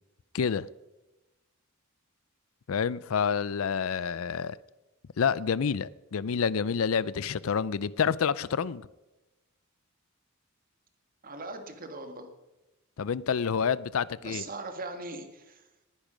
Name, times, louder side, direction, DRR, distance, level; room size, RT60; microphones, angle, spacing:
voice 1, 0.3-0.7 2.7-4.6 5.2-8.9 13.0-14.4, left 6 dB, 70° left, 0.5 m, -28 dB
voice 2, 11.2-12.3 14.2-15.6, right 2 dB, 45° right, 1.8 m, -40 dB
20.0 x 10.0 x 5.1 m
head